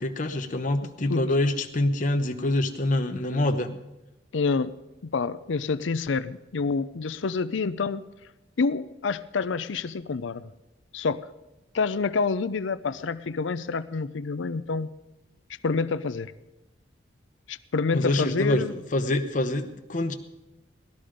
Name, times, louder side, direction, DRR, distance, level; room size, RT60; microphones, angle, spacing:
voice 1, 0.0-3.8 17.9-20.1, left 1 dB, 45° left, 5 dB, 0.9 m, -26 dB
voice 2, 4.3-4.7 5.0-8.0 8.6-10.5 10.9-11.3 11.7-14.9 15.6-16.3 17.5-18.7, left 4 dB, 85° left, 13 dB, 0.5 m, -27 dB
18.0 x 13.0 x 5.1 m, 0.98 s
head